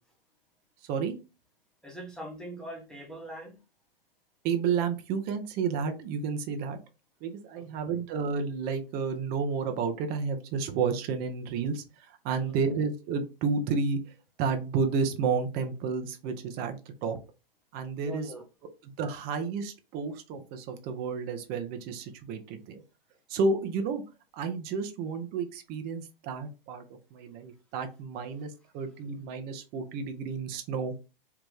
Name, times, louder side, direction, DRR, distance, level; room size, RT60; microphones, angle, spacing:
voice 1, 1.8-3.6 12.3-12.6 18.0-18.5, right 1 dB, ahead, 1.0 m, -42 dB
voice 2, 4.4-6.8 7.2-14.1 14.4-17.2 17.7-18.4 18.8-22.8 23.3-24.0 24.3-30.9, right 5 dB, 30° right, 0.7 m, -31 dB
3.5 x 2.4 x 3.2 m
hypercardioid pair, 115°, 29 cm